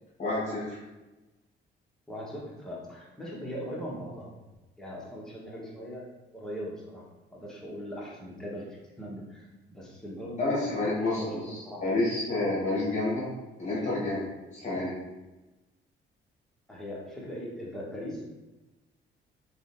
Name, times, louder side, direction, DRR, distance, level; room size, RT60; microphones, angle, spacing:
voice 1, 0.2-0.8 10.4-13.3 13.6-14.3 14.5-14.9, left 2 dB, 35° left, -7 dB, 1.2 m, -29 dB
voice 2, 2.1-4.4 4.8-6.1 6.3-10.6 10.9-11.9 16.7-18.3, equal, 5° left, -5 dB, 1.1 m, -40 dB
3.8 x 3.1 x 2.6 m, 1.1 s
cardioid pair, 90°, 20 cm